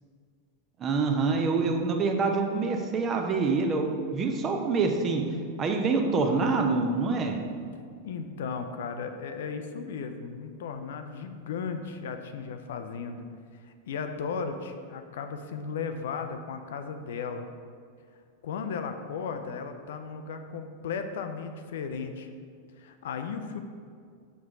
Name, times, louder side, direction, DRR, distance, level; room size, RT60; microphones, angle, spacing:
voice 1, 0.8-5.2 5.6-7.4, right 4 dB, 25° right, 4 dB, 0.7 m, -26 dB
voice 2, 8.0-13.3 13.5-17.5 18.4-22.3 22.8-23.6, left 5 dB, 60° left, 7 dB, 0.5 m, -35 dB
6.1 x 6.0 x 3.6 m, 2.2 s
figure-of-eight pair, 90°, 0 cm